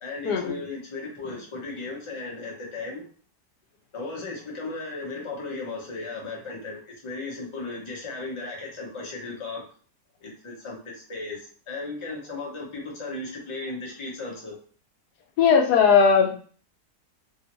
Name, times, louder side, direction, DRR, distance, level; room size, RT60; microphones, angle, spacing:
voice 1, 0.0-3.0 3.9-9.6 10.2-14.6, left 3 dB, 25° left, -2 dB, 0.7 m, -36 dB
voice 2, 15.4-16.3, left 6 dB, 80° left, 3 dB, 1.2 m, -18 dB
2.9 x 2.7 x 2.9 m, 0.41 s
omnidirectional pair, 1.7 m